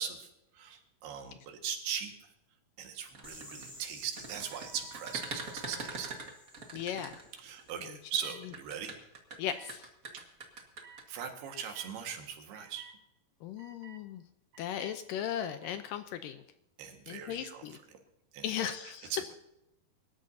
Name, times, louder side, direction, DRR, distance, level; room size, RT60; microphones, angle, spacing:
voice 1, 0.0-2.3 2.8-6.1 7.4-8.9 10.1-10.2 11.1-12.9 16.8-17.6 17.9-18.0 18.3-18.7 19.1-19.3, right 8 dB, 90° right, 4 dB, 3.7 m, -40 dB
sound 1, 3.0-7.7 8.4-11.0, right 3 dB, 40° right, 1.3 m, -43 dB
sound 2, 3.2-8.0, left 1 dB, 10° left, 3.2 m, -54 dB
sound 3, 4.3-6.2 6.9-7.2 8.2-8.4 9.5-9.7 10.8-11.0 11.5-12.0 12.5-13.0 13.6-14.0 14.5-15.0 15.4-15.8, right 7 dB, 70° right, 3.2 m, -55 dB
voice 2, 6.7-7.2 7.9-8.0 9.4-9.9 13.4-14.2 14.6-16.4 17.1-17.8 18.4-19.1, left 10 dB, 80° left, 10 dB, 2.1 m, -37 dB
25.0 x 13.0 x 2.7 m, 0.85 s
omnidirectional pair, 4.4 m